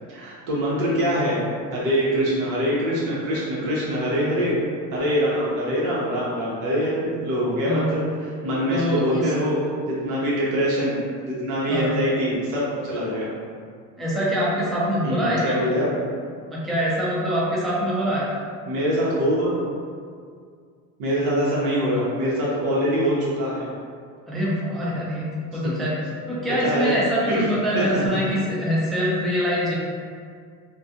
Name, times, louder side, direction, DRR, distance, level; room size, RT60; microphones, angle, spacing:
voice 1, 0.1-1.4 1.7-4.6 4.9-11.0 11.2-13.3 15.0-15.9 18.7-19.5 21.0-23.7 25.6-25.7 26.5-26.9 27.3-27.5 27.7-28.1, equal, 80° right, -6 dB, 1.0 m, -24 dB
voice 2, 8.7-9.3 11.7-11.9 14.0-15.6 16.5-18.3 24.3-26.0 26.3-29.7, equal, ahead, -7 dB, 0.3 m, -24 dB
2.3 x 2.3 x 2.6 m, 2.1 s
cardioid pair, 120°, 38 cm